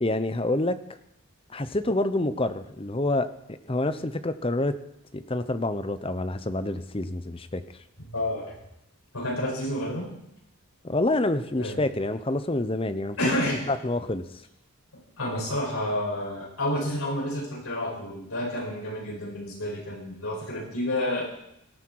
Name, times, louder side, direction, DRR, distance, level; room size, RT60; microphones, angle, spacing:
voice 1, 0.0-0.8 1.5-4.7 5.1-7.6 10.8-13.2 13.5-14.2, left 2 dB, 25° left, 11 dB, 0.7 m, -27 dB
voice 2, 8.0-8.6 9.1-10.1 11.6-11.8 13.2-13.6 15.2-21.2, left 1 dB, 80° left, -3 dB, 7.1 m, -29 dB
18.0 x 13.5 x 4.7 m, 0.80 s
head